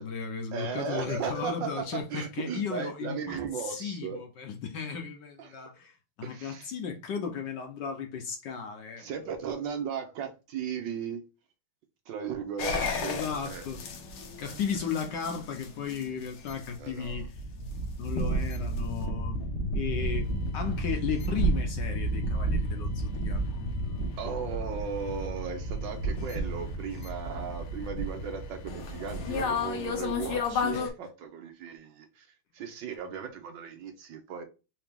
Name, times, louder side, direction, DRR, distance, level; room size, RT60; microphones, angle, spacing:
voice 1, 0.0-9.1 13.0-13.8 14.4-17.3 18.0-19.4 19.7-23.6 30.7-30.9, left 6 dB, 65° left, 1.2 m, -35 dB
voice 2, 0.5-4.2 5.4-5.6 6.2-6.7 9.0-11.2 12.1-13.7 14.4-14.6 16.8-17.3 24.2-32.3 32.5-34.4, right 7 dB, 70° right, 1.4 m, -36 dB
sound 1, 12.6-30.9, equal, 90° left, 1.9 m, -32 dB
4.9 x 2.8 x 3.5 m
omnidirectional pair, 2.3 m